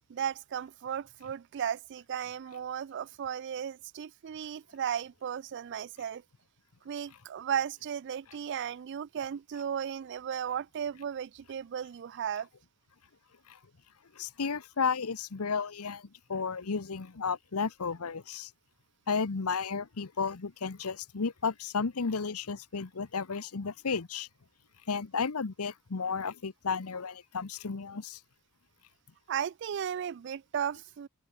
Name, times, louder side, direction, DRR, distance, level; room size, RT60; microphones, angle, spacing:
voice 1, 0.1-6.2 6.9-12.5 29.3-31.1, right 8 dB, 55° right, 0.3 m, -35 dB
voice 2, 14.2-18.5 19.1-24.3 24.9-28.2, left 5 dB, 90° left, 0.9 m, -33 dB
head